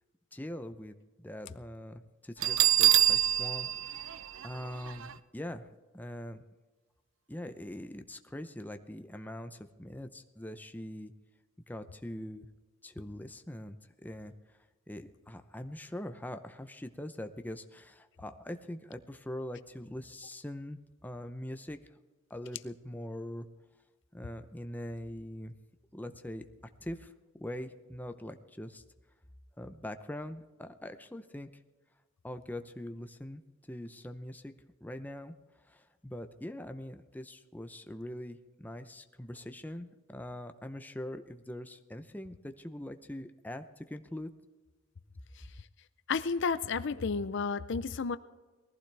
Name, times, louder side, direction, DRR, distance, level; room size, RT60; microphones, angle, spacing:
voice 1, 0.3-4.2 4.4-5.7 5.9-6.4 7.3-11.1 11.7-12.5 12.8-14.3 14.9-21.8 22.3-23.5 24.1-25.5 25.9-26.4 26.8-27.1 27.4-28.8 29.6-31.5 32.2-33.4 33.7-34.5 34.8-44.3, left 1 dB, 10° left, 8 dB, 0.6 m, -42 dB
Bell, 2.4-5.1, right 12 dB, 70° right, 0.5 m, -26 dB
voice 2, 46.1-48.2, left 5 dB, 60° left, 14 dB, 0.5 m, -32 dB
20.5 x 15.0 x 3.4 m, 1.3 s
head